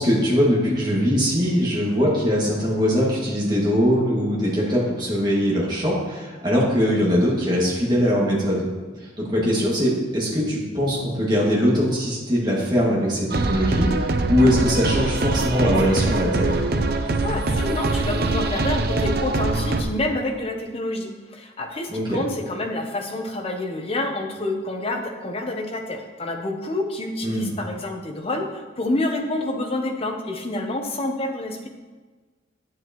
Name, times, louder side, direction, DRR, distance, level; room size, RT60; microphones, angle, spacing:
voice 1, 0.0-8.7 9.0-16.6 21.9-22.2 27.2-27.5, equal, 20° right, -5 dB, 2.1 m, -21 dB
sound 1, 13.3-19.8, right 2 dB, 50° right, 0.6 m, -23 dB
voice 2, 17.2-31.7, left 2 dB, 30° left, 3 dB, 0.8 m, -28 dB
9.7 x 7.5 x 3.0 m, 1.3 s
head